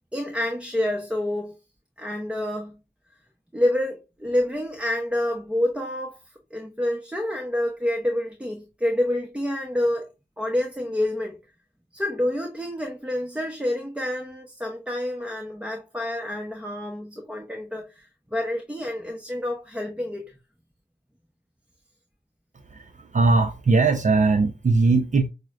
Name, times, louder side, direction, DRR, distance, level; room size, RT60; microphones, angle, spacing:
voice 1, 0.1-1.6 2.0-2.8 3.5-6.2 6.5-10.1 10.4-11.4 11.9-20.3, left 1 dB, 5° right, 0.7 m, -28 dB
voice 2, 22.7-25.3, right 3 dB, 50° right, 0.6 m, -20 dB
6.0 x 2.1 x 2.3 m
wide cardioid pair, 80°, 17 cm